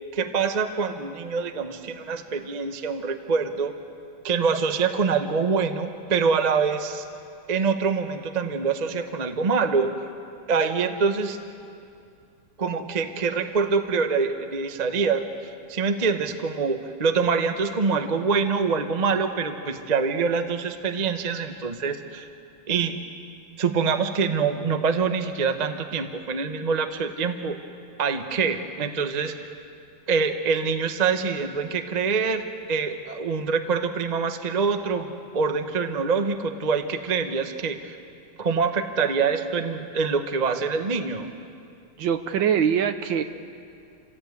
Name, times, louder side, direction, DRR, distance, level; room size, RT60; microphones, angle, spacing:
voice 1, 0.1-3.7 4.2-7.0 7.5-9.9 10.5-11.4 12.6-15.3 15.7-22.3 22.7-23.0 23.6-27.6 28.0-29.3 30.1-38.0 38.4-41.3, right 5 dB, 35° right, 7 dB, 0.7 m, -25 dB
voice 2, 42.0-43.2, right 8 dB, 65° right, 9 dB, 1.5 m, -23 dB
28.0 x 17.0 x 8.3 m, 2.5 s
omnidirectional pair, 2.4 m